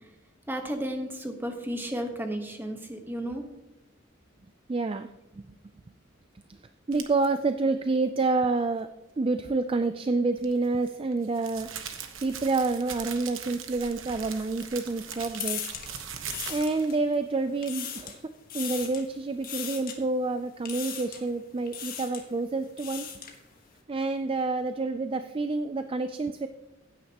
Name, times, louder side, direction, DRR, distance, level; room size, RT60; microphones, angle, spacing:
voice 1, 0.5-3.5, equal, 10° right, 4 dB, 1.2 m, -33 dB
voice 2, 4.7-5.1 5.3-5.5 6.5-6.6 6.9-8.9 9.2-11.7 12.2-15.6 16.5-18.2 18.5-23.1 23.9-26.5, right 3 dB, 25° right, 9 dB, 0.4 m, -28 dB
sound 1, 6.9-7.3 10.4-16.9, right 8 dB, 80° right, 1.1 m, -40 dB
sound 2, 14.1-17.1 17.5-18.2 18.5-19.1 19.4-20.0 20.6-21.3 21.7-22.2 22.6-23.4, left 8 dB, 45° left, 1.5 m, -38 dB
16.0 x 9.0 x 2.9 m, 0.96 s
head